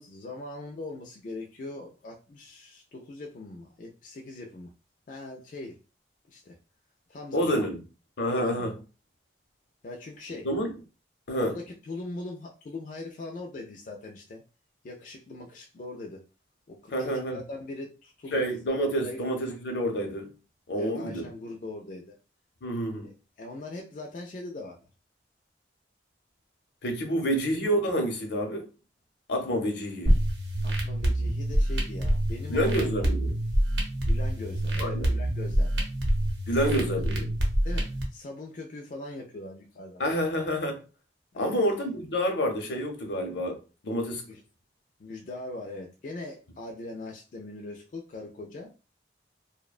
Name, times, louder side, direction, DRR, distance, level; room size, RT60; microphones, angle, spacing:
voice 1, 0.0-4.7 5.1-5.8 6.3-6.6 7.1-7.7 8.3-8.8 9.8-10.5 11.3-14.4 14.8-16.3 16.7-18.4 19.0-19.2 20.7-22.2 23.0-24.9 27.2-27.4 30.6-32.9 34.1-35.9 36.5-37.2 37.6-40.0 41.3-41.9 44.3-44.4 45.0-48.7, left 2 dB, 45° left, 0.3 m, -41 dB
voice 2, 7.3-7.8 8.2-8.7 10.4-10.7 11.3-11.5 16.9-17.4 18.3-20.3 20.7-21.2 22.6-23.1 26.8-28.7 29.3-30.1 32.5-33.4 34.7-35.1 36.5-37.3 40.0-40.8 41.4-44.3, equal, 80° left, 0.7 m, -28 dB
sound 1, 30.0-38.0, right 1 dB, 85° right, 0.7 m, -26 dB
2.6 x 2.1 x 2.4 m
head